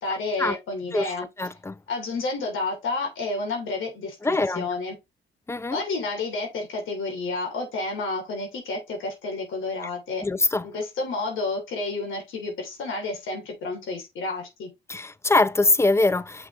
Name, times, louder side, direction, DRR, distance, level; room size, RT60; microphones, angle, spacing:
voice 1, 0.0-1.3 1.9-4.9 5.7-10.3 10.6-14.7, left 3 dB, 75° left, 2.9 m, -30 dB
voice 2, 1.4-1.7 4.2-4.6 5.5-5.8 10.2-10.6 14.9-16.5, left 2 dB, 15° left, 0.5 m, -23 dB
6.4 x 5.9 x 3.0 m
cardioid pair, 90°, 20 cm